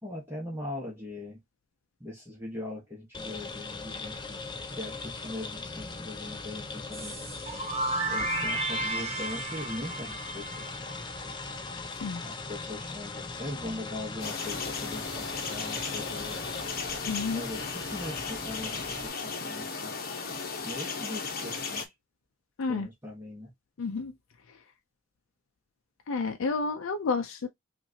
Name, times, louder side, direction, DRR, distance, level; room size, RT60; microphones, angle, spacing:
voice 1, 0.0-1.4 2.0-4.4 4.7-7.1 8.1-11.0 12.2-16.4 17.3-19.9 20.6-21.8 22.7-23.5, left 1 dB, 10° right, 1.2 m, -40 dB
sound 1, 3.1-19.1, left 3 dB, 20° left, 0.5 m, -40 dB
sound 2, 6.9-11.7, right 2 dB, 30° right, 1.3 m, -33 dB
voice 2, 11.9-12.2 17.1-17.4 22.6-22.9 23.8-24.1 24.5-24.6 26.1-27.5, left 4 dB, 80° left, 0.5 m, -31 dB
Birds in a forest, 14.2-21.8, left 4 dB, 45° left, 1.0 m, -35 dB
5.6 x 2.6 x 2.7 m
head